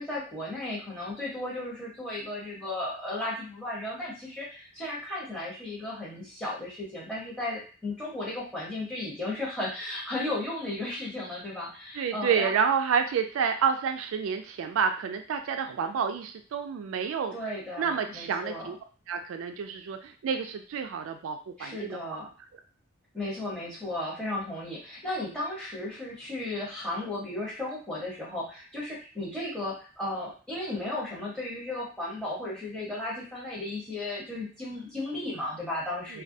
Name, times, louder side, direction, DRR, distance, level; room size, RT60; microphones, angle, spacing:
voice 1, 0.0-12.5 17.3-18.7 21.6-22.3 23.1-36.2, left 1 dB, 5° left, -7 dB, 0.8 m, -35 dB
voice 2, 11.9-17.3 17.8-18.8 19.1-22.0 36.1-36.2, right 6 dB, 85° right, 6 dB, 0.3 m, -29 dB
2.2 x 2.1 x 2.6 m, 0.37 s
head